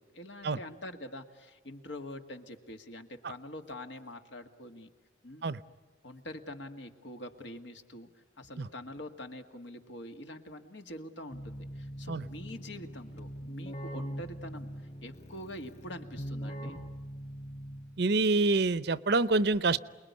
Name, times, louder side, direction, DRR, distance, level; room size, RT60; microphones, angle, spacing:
voice 1, 0.0-4.9 5.2-5.5 6.0-8.1 8.4-14.7 15.0-16.8, left 1 dB, 75° left, 6 dB, 2.0 m, -45 dB
Keyboard (musical), 11.3-18.2, equal, 40° left, 4.3 m, -42 dB
voice 2, 18.0-19.8, right 3 dB, 60° right, 16 dB, 0.7 m, -26 dB
29.0 x 20.5 x 9.6 m, 1.4 s
head